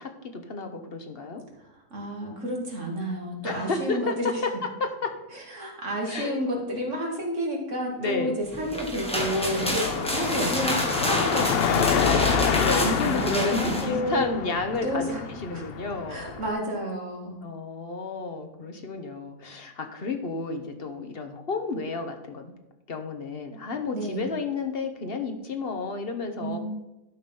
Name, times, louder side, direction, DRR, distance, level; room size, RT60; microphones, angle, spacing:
voice 1, 0.0-1.4 3.4-5.1 6.0-6.4 8.0-8.4 9.8-10.6 12.3-16.2 17.4-22.5 22.9-26.6, left 3 dB, 40° left, 6 dB, 1.1 m, -31 dB
voice 2, 1.9-4.3 5.3-12.1 12.8-14.3 14.8-15.2 15.5-15.6 16.1-17.4 23.9-24.3 26.4-26.6, equal, 50° right, -1 dB, 2.3 m, -30 dB
sound 1, 8.5-13.9, equal, 5° left, 1.4 m, -30 dB
Car passing by / Traffic noise roadway noise / Engine, 9.2-16.5, left 6 dB, 70° left, 0.5 m, -27 dB
12.0 x 5.1 x 5.4 m, 0.98 s
omnidirectional pair, 1.7 m